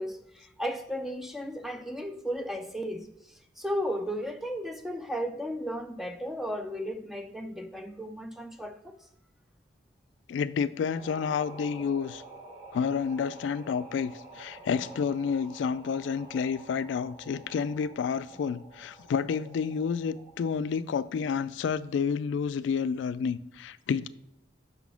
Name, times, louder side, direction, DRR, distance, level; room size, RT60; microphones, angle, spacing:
voice 1, 0.0-3.1 3.6-8.9, equal, ahead, 0.5 m, -34 dB
voice 2, 10.3-12.2 12.7-24.1, left 6 dB, 75° left, 0.3 m, -30 dB
sound 1, 10.8-20.5, right 2 dB, 30° right, 1.6 m, -49 dB
5.7 x 4.1 x 5.8 m
head